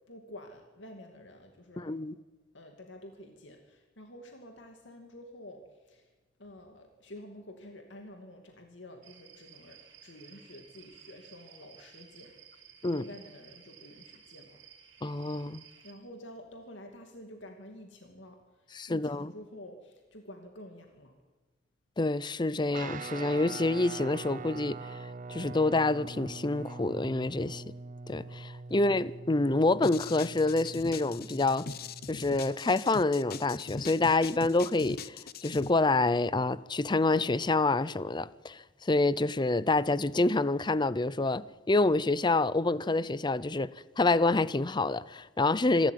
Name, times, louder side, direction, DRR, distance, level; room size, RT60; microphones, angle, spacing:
voice 1, 0.1-1.9 2.5-6.1 6.4-14.6 15.8-21.1 28.7-28.8, left 1 dB, 70° left, 2.6 m, -49 dB
voice 2, 1.8-2.1 12.8-13.0 15.0-15.6 18.7-19.3 22.0-25.0 25.3-27.6 28.1-31.7 32.1-35.2 35.4-43.7 44.0-45.9, left 2 dB, 25° left, 0.6 m, -27 dB
sound 1, 9.0-15.9, right 8 dB, 75° right, 3.4 m, -55 dB
Guitar, 22.7-32.6, right 3 dB, 45° right, 0.7 m, -43 dB
sound 2, 29.8-35.7, left 5 dB, 55° left, 0.8 m, -42 dB
26.0 x 13.0 x 9.4 m
head